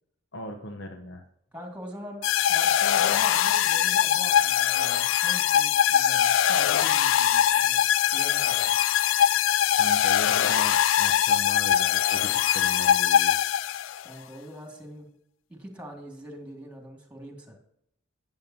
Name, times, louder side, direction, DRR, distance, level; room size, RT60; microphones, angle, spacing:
voice 1, 0.3-1.2 9.7-13.3, left 1 dB, 65° left, 4 dB, 1.0 m, -38 dB
voice 2, 1.5-2.2 2.5-7.8 8.1-8.8 14.0-15.1 15.5-17.6, equal, 5° right, 2 dB, 2.3 m, -42 dB
sound 1, 2.2-14.0, left 10 dB, 85° left, 0.3 m, -22 dB
12.0 x 9.1 x 2.8 m, 0.73 s
head